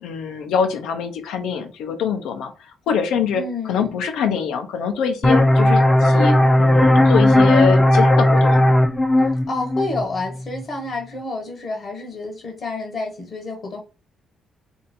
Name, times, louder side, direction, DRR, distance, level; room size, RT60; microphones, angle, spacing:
voice 1, 0.0-2.5 2.9-3.4 3.7-8.7, left 7 dB, 85° left, 0.7 m, -24 dB
voice 2, 3.3-4.0 9.5-13.8, left 2 dB, 50° left, 1.0 m, -29 dB
sound 1, 5.2-10.6, left 1 dB, 10° left, 0.5 m, -16 dB
2.8 x 2.5 x 4.1 m
cardioid pair, 90°, 0 cm